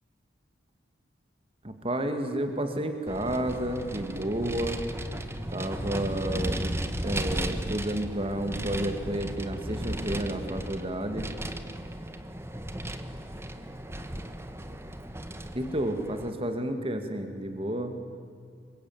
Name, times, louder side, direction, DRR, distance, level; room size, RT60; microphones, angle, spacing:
voice 1, 1.6-4.8 5.5-6.8 7.0-11.3 15.5-18.0, right 1 dB, 30° right, 6 dB, 2.0 m, -31 dB
Vehicle, 3.1-16.3, right 1 dB, 15° right, 1.4 m, -35 dB
27.0 x 23.5 x 9.4 m, 2.4 s
head